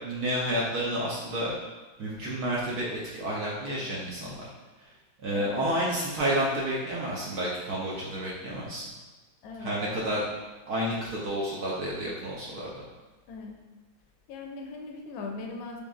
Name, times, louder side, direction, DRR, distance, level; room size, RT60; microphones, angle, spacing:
voice 1, 0.0-1.6 2.0-4.4 5.2-8.9 9.6-10.2 10.7-12.8, equal, 65° right, -5 dB, 1.0 m, -30 dB
voice 2, 5.3-5.7 9.4-9.8 13.3-13.6 14.3-15.8, left 3 dB, 80° left, 1 dB, 1.4 m, -39 dB
5.2 x 3.3 x 2.4 m, 1.2 s
omnidirectional pair, 2.2 m